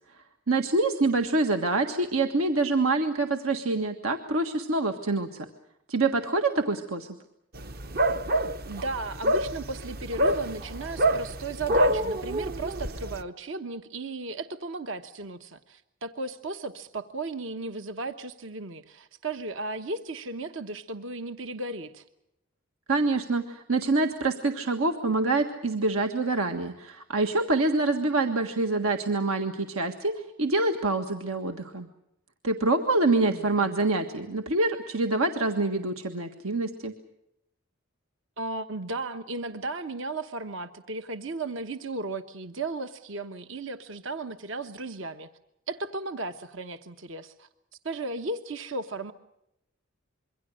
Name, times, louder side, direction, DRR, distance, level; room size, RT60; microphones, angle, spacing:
voice 1, 0.5-5.5 5.9-7.1 22.9-31.9 32.4-36.9, right 2 dB, 80° right, 6 dB, 1.6 m, -26 dB
sound 1, 7.6-13.2, right 1 dB, 45° right, 0.9 m, -27 dB
voice 2, 8.7-22.0 33.1-33.5 38.4-45.3 45.7-47.5 47.8-49.1, right 2 dB, 60° right, 9 dB, 1.1 m, -35 dB
26.5 x 23.5 x 6.5 m, 0.84 s
head